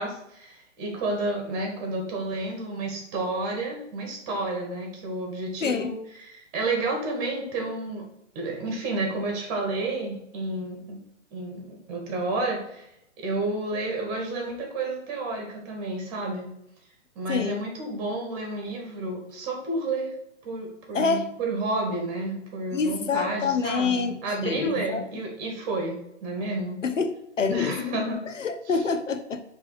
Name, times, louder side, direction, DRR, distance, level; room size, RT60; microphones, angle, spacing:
voice 1, 0.0-8.1 8.3-11.0 11.3-12.9 13.2-16.5 17.2-20.1 20.4-26.8 27.5-28.2 28.7-28.8, right 2 dB, 35° right, 1 dB, 1.9 m, -30 dB
voice 2, 5.6-5.9 17.3-17.6 20.9-21.3 22.7-25.0 26.8-27.7 28.4-29.4, left 5 dB, 90° left, 8 dB, 0.9 m, -27 dB
5.9 x 3.5 x 4.8 m, 0.78 s
hypercardioid pair, 140°, 36 cm